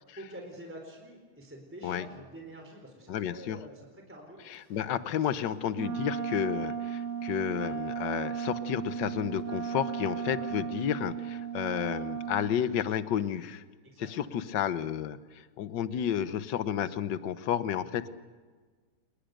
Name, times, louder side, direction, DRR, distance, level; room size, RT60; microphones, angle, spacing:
voice 1, 0.1-4.8 5.6-5.7 10.3-10.5 13.8-14.3 15.9-16.4, right 1 dB, 5° right, 2 dB, 4.1 m, -48 dB
voice 2, 3.1-3.6 4.5-13.6 14.0-15.2 15.6-18.1, left 9 dB, 60° left, 13 dB, 1.5 m, -31 dB
Wind instrument woodwind instrument, 5.7-12.6, right 8 dB, 55° right, 1.7 m, -35 dB
28.5 x 20.5 x 6.6 m, 1.5 s
omnidirectional pair, 2.4 m